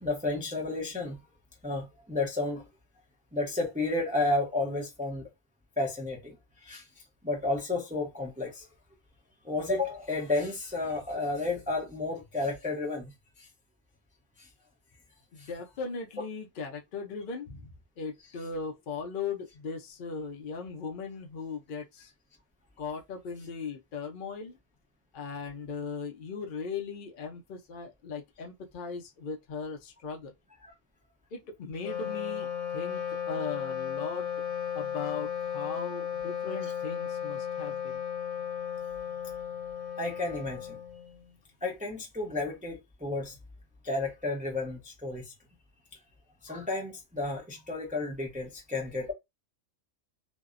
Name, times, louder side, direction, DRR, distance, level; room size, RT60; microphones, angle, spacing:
voice 1, 0.0-1.2 1.6-2.6 3.3-5.3 5.8-6.4 6.6-6.8 7.2-8.7 9.4-13.1 40.0-40.8 41.6-43.4 43.8-45.2 46.4-49.1, left 2 dB, 15° right, 0.3 m, -32 dB
voice 2, 15.3-17.6 18.0-22.1 22.8-24.6 25.1-30.3 31.3-32.5 32.7-34.3 34.7-38.0, left 5 dB, 60° left, 0.5 m, -38 dB
Wind instrument woodwind instrument, 31.7-41.3, left 8 dB, 80° left, 1.0 m, -35 dB
2.6 x 2.1 x 2.4 m
omnidirectional pair, 1.3 m